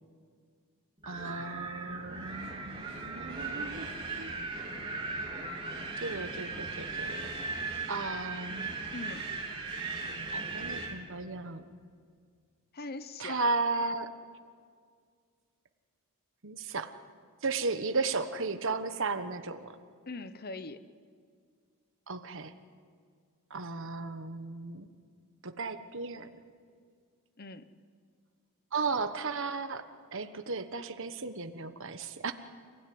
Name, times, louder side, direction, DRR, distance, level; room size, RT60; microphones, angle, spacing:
Wind, 1.0-11.0, right 3 dB, 25° right, 3.6 m, -38 dB
voice 1, 1.1-4.3 6.0-7.3 7.9-8.7 10.3-11.7 13.2-14.1 16.4-16.9 17.4-19.8 22.1-22.5 23.5-24.9 25.4-26.3 28.7-29.8 30.1-32.3, right 4 dB, 60° right, 8 dB, 1.3 m, -35 dB
voice 2, 8.9-9.3 12.7-13.6 20.1-20.8 27.4-27.7, left 3 dB, 45° left, 12 dB, 1.0 m, -41 dB
28.5 x 16.5 x 9.6 m, 2.1 s
head